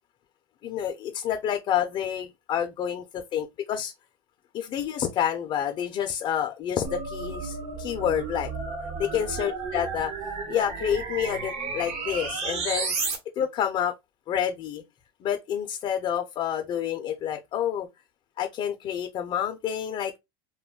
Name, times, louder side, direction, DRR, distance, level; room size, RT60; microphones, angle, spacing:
voice 1, 0.6-3.9 4.5-8.5 9.0-10.1 10.5-12.9 13.4-13.9 14.3-14.8 15.2-17.9 18.4-20.2, left 9 dB, 40° left, 0.4 m, -28 dB
sound 1, 6.8-13.2, right 4 dB, 55° right, 1.1 m, -32 dB
2.3 x 2.1 x 3.5 m
supercardioid pair, 115°, 13 cm